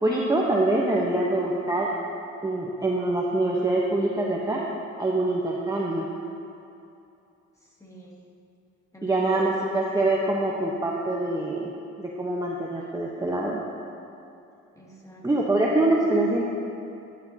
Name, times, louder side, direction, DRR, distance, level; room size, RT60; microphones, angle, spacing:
voice 1, 0.0-1.9 2.4-4.6 5.0-6.1 9.0-11.7 12.0-13.6 15.2-16.5, right 2 dB, 10° right, -3 dB, 1.0 m, -24 dB
voice 2, 7.6-8.2 8.9-9.5 14.7-15.8 16.1-16.2, left 1 dB, 10° left, -4 dB, 2.3 m, -45 dB
12.0 x 11.5 x 2.8 m, 2.7 s
cardioid pair, 90°, 30 cm